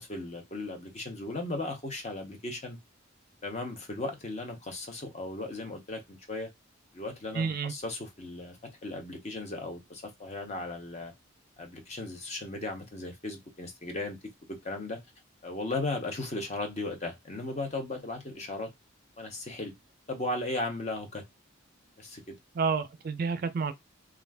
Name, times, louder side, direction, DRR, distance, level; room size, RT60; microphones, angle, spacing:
voice 1, 0.0-2.8 3.4-6.5 6.9-11.1 11.6-14.2 14.5-15.0 15.4-18.7 19.2-19.7 20.1-21.2 22.0-22.4, left 2 dB, 35° left, 0.6 m, -36 dB
voice 2, 7.3-7.7 22.5-23.7, right 5 dB, 45° right, 0.3 m, -29 dB
2.4 x 2.3 x 3.4 m
head